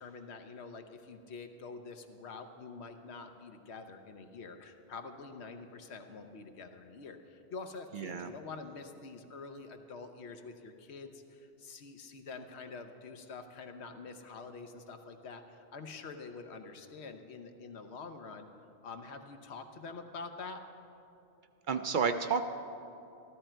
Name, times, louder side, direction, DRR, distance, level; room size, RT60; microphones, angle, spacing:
voice 1, 0.0-18.5 18.8-20.6, left 4 dB, 80° left, 7 dB, 1.1 m, -46 dB
voice 2, 7.9-8.3 21.7-22.5, right 5 dB, 60° right, 8 dB, 0.6 m, -31 dB
13.5 x 13.0 x 4.4 m, 2.8 s
omnidirectional pair, 1.1 m